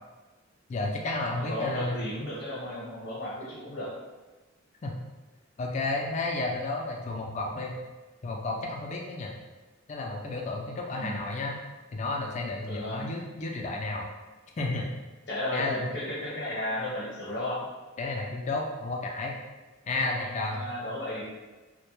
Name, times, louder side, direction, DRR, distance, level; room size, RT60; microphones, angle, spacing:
voice 1, 0.7-2.0 4.8-5.0 5.6-7.8 8.2-9.3 9.9-11.6 11.9-14.1 14.6-14.9 15.5-15.9 18.0-19.4 19.9-20.6, left 2 dB, 35° left, 0 dB, 0.3 m, -32 dB
voice 2, 1.4-3.9 10.9-11.2 12.6-13.1 15.3-17.7 20.0-21.2, left 1 dB, 55° left, -8 dB, 0.7 m, -34 dB
2.1 x 2.1 x 2.9 m, 1.2 s
head